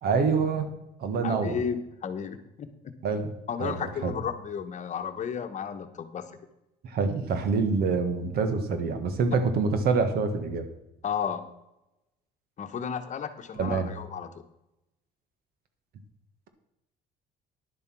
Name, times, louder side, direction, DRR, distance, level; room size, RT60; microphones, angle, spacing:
voice 1, 0.0-0.7 1.0-1.6 3.0-3.3 3.6-4.1 6.8-10.6 13.6-13.9, right 4 dB, 65° right, 8 dB, 1.7 m, -26 dB
voice 2, 1.2-2.9 3.5-6.4 11.0-11.4 12.6-14.3, left 7 dB, 45° left, 8 dB, 1.2 m, -33 dB
10.5 x 7.3 x 6.1 m, 0.91 s
cardioid pair, 110°, 17 cm